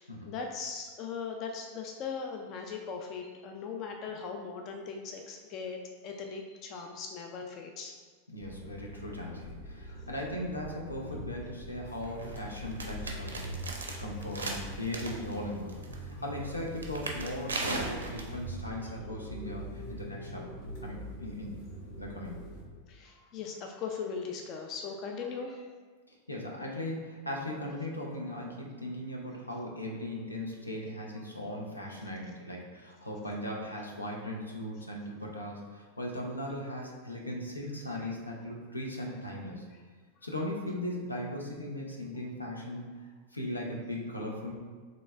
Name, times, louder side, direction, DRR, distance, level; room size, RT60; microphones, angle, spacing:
voice 1, 0.0-7.9 13.9-14.0 16.1-16.2 22.9-25.7 38.0-38.1, left 5 dB, 35° left, 3 dB, 0.4 m, -39 dB
voice 2, 8.3-20.5 20.8-21.6 22.0-22.4 26.1-39.6 40.2-44.5, left 1 dB, 85° left, -1 dB, 0.7 m, -38 dB
sound 1, 8.4-22.7, right 1 dB, 55° left, 1.1 m, -43 dB
sound 2, 11.9-18.5, right 2 dB, 75° right, 0.6 m, -39 dB
4.1 x 3.2 x 3.3 m, 1.5 s
figure-of-eight pair, 90°, 0 cm